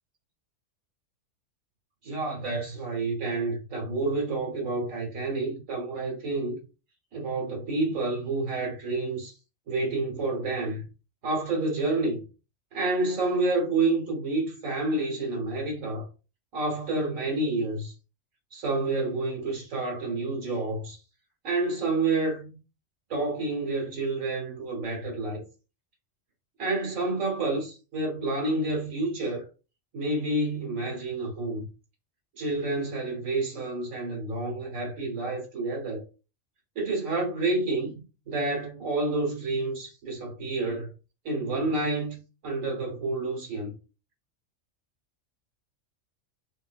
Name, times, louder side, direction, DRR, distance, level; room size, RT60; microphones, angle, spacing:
voice 1, 2.0-6.6 7.1-9.3 9.7-10.8 11.2-12.2 12.7-16.1 16.5-17.9 18.5-21.0 21.4-22.6 23.1-25.4 26.6-29.5 29.9-31.7 32.3-36.0 36.7-40.9 41.2-43.7, right 2 dB, 90° right, 1.6 m, -29 dB
3.2 x 2.7 x 2.4 m
omnidirectional pair, 1.3 m